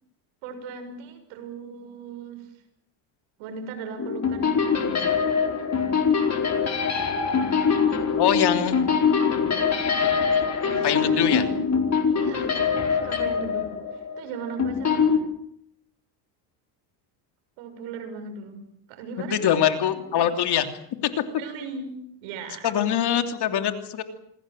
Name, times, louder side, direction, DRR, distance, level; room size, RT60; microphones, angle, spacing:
voice 1, 0.4-2.5 3.4-5.1 8.6-8.7 10.6-11.5 12.1-12.6 12.9-15.2 17.6-20.3 21.4-22.0 22.2-22.7, right 5 dB, 85° right, 7 dB, 6.6 m, -38 dB
sound 1, 4.0-15.2, left 6 dB, 35° left, 4.4 m, -23 dB
voice 2, 8.2-8.7 10.8-11.4 19.2-20.7 22.6-24.0, left 9 dB, 55° left, 7 dB, 3.1 m, -23 dB
27.5 x 19.5 x 7.7 m, 0.73 s
cardioid pair, 110°, 47 cm